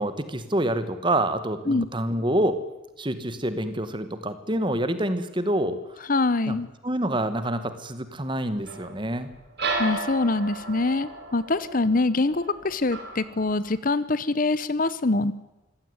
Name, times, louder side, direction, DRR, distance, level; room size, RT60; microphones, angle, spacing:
voice 1, 0.0-2.6 3.0-5.8 6.5-6.6 6.8-9.3, right 1 dB, 25° right, 11 dB, 1.7 m, -27 dB
voice 2, 6.1-6.7 9.8-15.3, left 3 dB, 40° left, 16 dB, 0.9 m, -24 dB
sound 1, 8.7-13.8, right 3 dB, 55° right, 4.5 m, -34 dB
24.5 x 16.5 x 9.7 m, 1.0 s
head